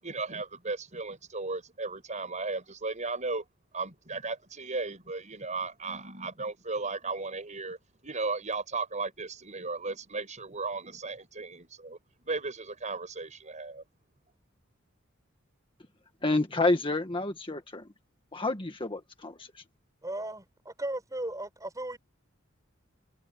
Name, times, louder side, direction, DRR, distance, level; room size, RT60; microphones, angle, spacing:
voice 1, 0.0-3.4 3.7-7.8 8.0-12.0 12.2-13.8, right 3 dB, 35° right, 6.1 m, -35 dB
voice 2, 16.2-17.9 18.3-19.6, left 2 dB, 25° left, 1.7 m, -29 dB
voice 3, 20.0-22.0, right 1 dB, 15° right, 7.3 m, -36 dB
head